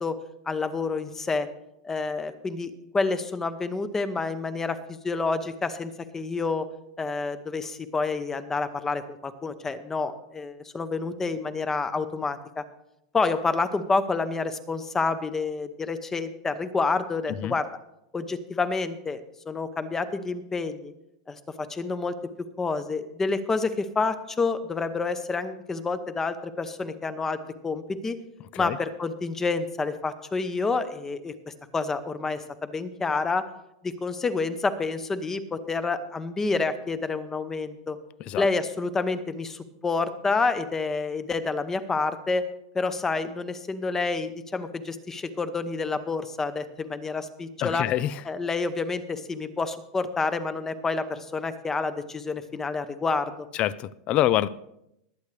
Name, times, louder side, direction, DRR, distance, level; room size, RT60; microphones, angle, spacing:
voice 1, 0.0-1.5 1.8-6.7 7.0-12.6 13.1-17.7 18.1-19.2 19.5-20.9 21.3-28.2 28.6-33.5 33.8-38.0 38.4-42.5 42.7-47.9 48.3-53.5, left 4 dB, 15° left, 0.8 m, -28 dB
voice 2, 47.6-48.2 53.5-54.5, left 13 dB, 35° left, 0.4 m, -26 dB
21.5 x 8.3 x 3.3 m
supercardioid pair, 145°, 3 cm